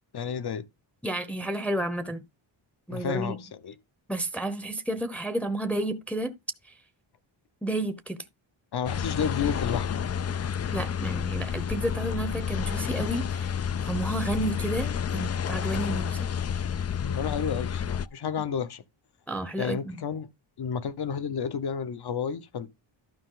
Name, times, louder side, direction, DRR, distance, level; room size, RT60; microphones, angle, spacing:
voice 1, 0.1-0.7 2.9-3.8 8.7-10.0 17.0-18.8 19.6-20.3 20.6-22.7, left 7 dB, 55° left, 1.0 m, -31 dB
voice 2, 1.0-2.2 2.9-3.4 4.1-6.4 7.6-8.2 10.7-13.5 13.8-16.3 19.3-20.0, right 1 dB, 5° left, 0.8 m, -31 dB
sound 1, 8.9-18.1, left 7 dB, 35° left, 0.4 m, -30 dB
12.0 x 5.4 x 3.8 m
wide cardioid pair, 120°, 47 cm